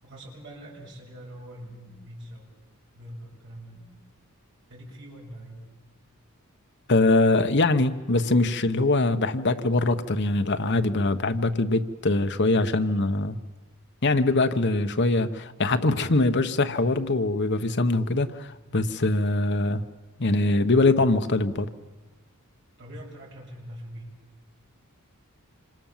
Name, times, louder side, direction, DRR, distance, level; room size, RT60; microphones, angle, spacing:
voice 1, 0.0-2.5 2.9-4.0 4.7-5.6 22.8-24.1, equal, 55° right, -3 dB, 7.5 m, -43 dB
voice 2, 6.9-13.4 14.0-19.8 20.2-21.7, left 2 dB, 50° left, 9 dB, 1.1 m, -23 dB
27.0 x 25.5 x 7.5 m, 1.2 s
head